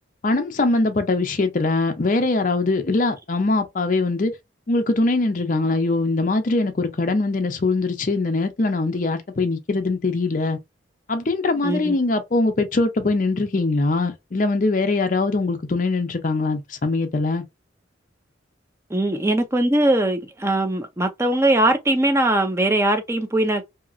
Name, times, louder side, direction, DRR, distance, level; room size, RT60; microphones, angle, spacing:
voice 1, 0.2-4.3 4.7-10.6 11.1-17.4, left 3 dB, 40° left, 0.5 m, -22 dB
voice 2, 11.6-12.0 18.9-23.6, right 1 dB, 15° right, 0.4 m, -20 dB
2.9 x 2.4 x 2.4 m
head